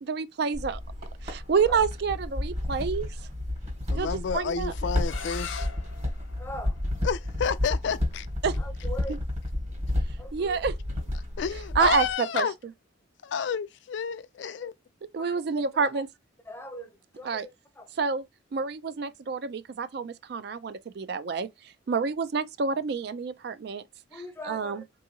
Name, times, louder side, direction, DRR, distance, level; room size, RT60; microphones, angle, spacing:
voice 1, 0.0-0.8 1.2-3.1 3.9-4.7 8.4-8.5 9.1-9.2 10.3-10.7 11.8-12.1 12.3-12.5 15.1-16.1 17.3-17.5 18.0-18.2 18.5-21.5 21.9-23.8 24.5-24.8, right 5 dB, 55° right, 0.4 m, -28 dB
sound 1, 0.5-12.1, left 1 dB, 35° right, 1.3 m, -31 dB
voice 2, 3.9-5.7 7.0-8.3 11.4-12.5 13.2-14.7, left 6 dB, 65° left, 0.3 m, -30 dB
sound 2, 5.0-10.7, left 6 dB, 80° left, 0.7 m, -45 dB
voice 3, 6.4-6.8 8.6-9.2 10.2-10.6 14.6-14.7 15.2-16.0 16.4-17.9 24.1-24.8, left 1 dB, 10° left, 0.6 m, -42 dB
3.5 x 2.7 x 2.7 m
head